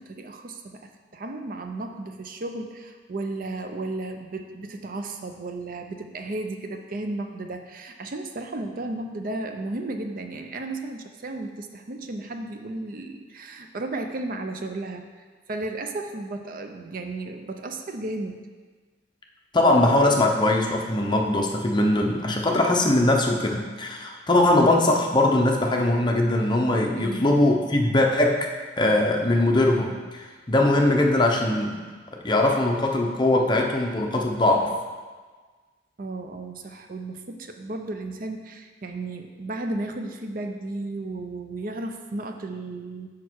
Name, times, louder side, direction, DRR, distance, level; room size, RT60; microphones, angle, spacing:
voice 1, 0.0-15.0 15.5-18.4 27.0-27.3 36.0-43.1, right 2 dB, 50° right, 5 dB, 0.5 m, -34 dB
voice 2, 19.5-28.5 28.8-31.8 32.2-34.8, left 1 dB, 25° left, 1 dB, 0.7 m, -21 dB
6.4 x 5.9 x 4.6 m, 1.4 s
head